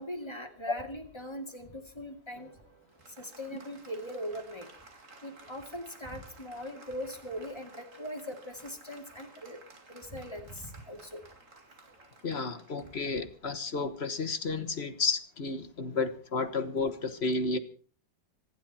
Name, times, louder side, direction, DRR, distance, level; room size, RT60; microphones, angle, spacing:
voice 1, 0.0-2.5 3.2-4.7 5.2-9.6 9.9-11.2, equal, 15° left, 3 dB, 2.5 m, -40 dB
Applause, 2.4-14.2, right 3 dB, 45° right, 2.5 m, -55 dB
voice 2, 12.2-17.6, left 4 dB, 40° left, 9 dB, 1.4 m, -32 dB
26.0 x 11.0 x 4.4 m, 0.40 s
omnidirectional pair, 1.9 m